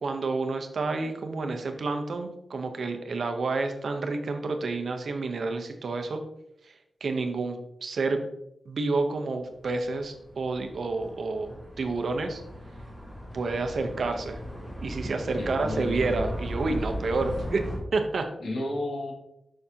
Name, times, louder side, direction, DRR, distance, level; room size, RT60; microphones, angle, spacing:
voice 1, 0.0-6.2 7.0-8.2 8.7-12.4 13.3-14.4 14.8-17.6 17.9-18.2, right 3 dB, 65° right, 5 dB, 0.8 m, -29 dB
sound 1, 9.7-17.8, equal, 10° left, 2.5 m, -37 dB
voice 2, 15.4-16.3 18.4-19.1, left 1 dB, 70° left, -1 dB, 1.8 m, -32 dB
6.9 x 6.3 x 2.8 m, 0.82 s
wide cardioid pair, 105°, 0 cm